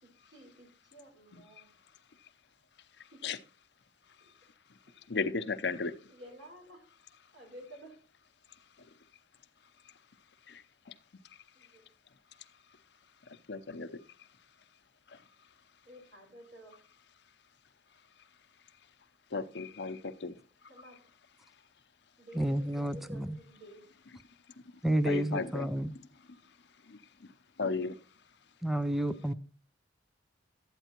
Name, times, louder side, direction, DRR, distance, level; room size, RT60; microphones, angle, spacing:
voice 1, 0.0-1.7 3.1-3.3 4.2-4.3 6.1-6.9 7.3-8.0 11.5-11.9 15.8-16.8 20.7-21.0 22.2-23.8, equal, 90° right, 4.9 m, -52 dB
voice 2, 5.1-5.9 10.5-10.6 13.5-13.9 15.1-15.2 19.3-20.3 25.0-25.7 26.9-27.0 27.6-28.0, left 4 dB, 65° left, 0.7 m, -34 dB
voice 3, 22.3-23.4 24.8-25.9 28.6-29.3, right 1 dB, ahead, 0.4 m, -30 dB
12.0 x 9.0 x 2.9 m
head